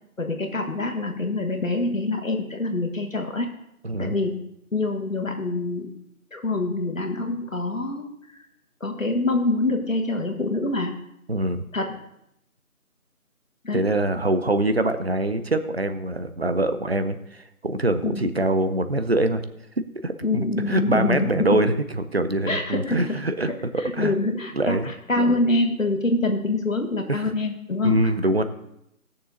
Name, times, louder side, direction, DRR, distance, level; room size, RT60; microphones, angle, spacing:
voice 1, 0.2-3.5 4.0-4.4 4.7-5.9 6.3-8.4 8.8-11.0 11.7-12.0 13.6-13.9 18.0-18.3 20.2-21.6 22.5-23.2 23.5-28.1, left 2 dB, 65° left, 4 dB, 1.8 m, -25 dB
voice 2, 3.8-4.2 11.3-11.7 13.7-19.4 19.8-24.1 24.5-24.9 27.1-27.2 27.8-28.4, right 2 dB, 45° right, 10 dB, 0.7 m, -24 dB
16.5 x 6.8 x 3.9 m, 0.78 s
figure-of-eight pair, 165°, 43 cm